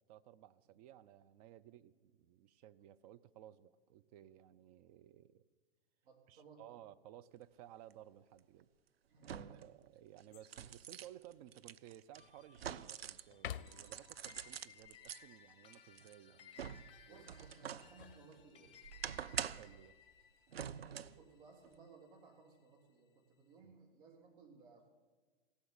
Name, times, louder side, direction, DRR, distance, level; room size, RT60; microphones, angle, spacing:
voice 1, 0.0-5.4 6.3-8.7 9.3-16.6 17.1-17.2 19.5-20.0 23.6-23.7, right 12 dB, 40° right, 13 dB, 0.7 m, -58 dB
voice 2, 6.0-6.6 9.1-9.7 17.0-18.8 20.8-24.9, right 4 dB, 60° right, 1 dB, 3.5 m, -61 dB
sound 1, 7.9-8.0 9.2-9.7 10.2-13.3 13.7-15.2 15.7-17.9 18.3-19.8 20.5-21.2 21.6-21.8, right 9 dB, 80° right, 0.5 m, -46 dB
sound 2, 10.3-10.8 11.3-11.4 12.0-12.8 13.3-14.1 17.6-18.9 20.3-20.8, left 10 dB, 60° left, 0.6 m, -51 dB
sound 3, 12.1-22.7, left 8 dB, 20° left, 2.1 m, -62 dB
15.5 x 7.9 x 9.5 m, 1.4 s
figure-of-eight pair, 110°, 30 cm